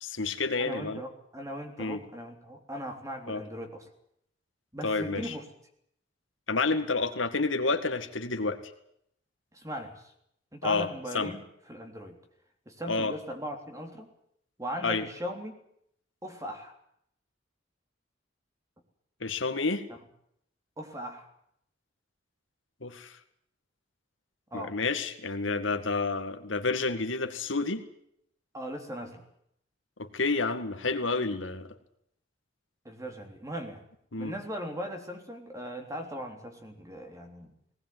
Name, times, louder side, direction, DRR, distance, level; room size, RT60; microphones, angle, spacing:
voice 1, 0.0-1.0 1.8-2.0 3.3-3.4 4.8-5.3 6.5-8.7 10.6-10.9 11.1-11.3 12.9-13.1 14.8-15.0 19.2-19.8 22.8-23.2 24.5-27.8 30.0-31.7 34.1-34.3, left 3 dB, 85° left, 8 dB, 2.1 m, -29 dB
voice 2, 0.6-3.8 4.7-5.4 9.5-10.1 10.5-11.4 11.7-12.2 12.7-14.1 14.6-15.5 16.2-16.7 20.8-21.3 24.5-24.8 28.5-29.2 32.9-33.8 34.2-37.5, equal, 15° right, 4 dB, 3.5 m, -38 dB
19.0 x 18.5 x 9.4 m, 0.72 s
head